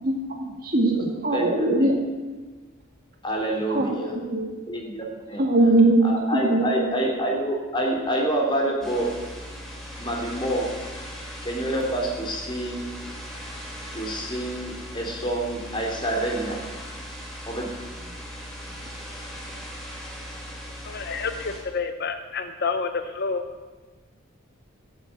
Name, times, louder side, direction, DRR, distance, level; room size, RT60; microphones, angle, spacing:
voice 1, 0.0-1.9 3.7-4.5 5.4-7.0, right 2 dB, 45° right, 1 dB, 2.2 m, -22 dB
voice 2, 1.3-1.9 3.2-4.1 4.7-5.5 6.0-9.1 10.0-10.7 11.4-12.9 13.9-16.6 17.5-17.7, right 1 dB, 25° left, 0 dB, 2.8 m, -27 dB
sound 1, 8.8-21.6, equal, ahead, 3.0 m, -39 dB
voice 3, 20.9-23.4, left 4 dB, 50° left, 8 dB, 0.7 m, -29 dB
14.5 x 7.5 x 8.4 m, 1.3 s
head